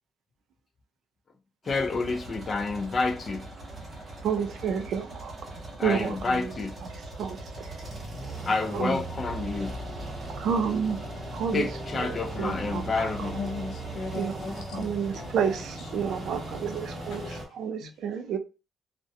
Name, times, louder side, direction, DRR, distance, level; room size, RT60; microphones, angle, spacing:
voice 1, 1.7-3.4 5.8-6.7 8.5-9.7 11.5-13.4, left 3 dB, 25° left, 0.3 m, -29 dB
sound 1, 1.7-17.5, right 2 dB, 20° right, 0.7 m, -39 dB
voice 2, 4.2-5.3 5.8-6.9 7.2-7.4 8.7-9.0 10.4-11.0 11.3-11.7 11.9-13.4 14.1-14.4 14.7-18.4, right 7 dB, 55° right, 0.3 m, -30 dB
voice 3, 13.2-14.8 15.1-15.6 17.1-17.4 17.8-17.9, left 4 dB, 75° left, 0.6 m, -37 dB
2.4 x 2.1 x 2.6 m
cardioid pair, 165°, 0 cm